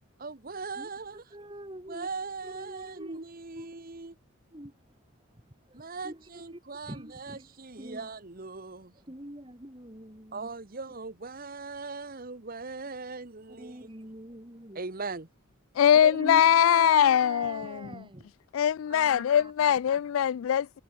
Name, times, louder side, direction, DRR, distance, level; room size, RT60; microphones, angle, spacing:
voice 1, 0.2-1.2 1.9-4.1 5.7-8.9 10.3-13.9 14.7-15.3, right 4 dB, 45° right, 1.3 m, -40 dB
voice 2, 0.8-2.1 2.4-3.2 3.5-3.7 4.5-4.7 5.7-7.5 7.8-8.1 8.9-10.5 13.5-14.8 16.0-18.3 18.9-19.8, right 1 dB, 25° right, 3.5 m, -43 dB
voice 3, 15.8-17.9 18.5-20.8, left 9 dB, 80° left, 0.3 m, -22 dB
head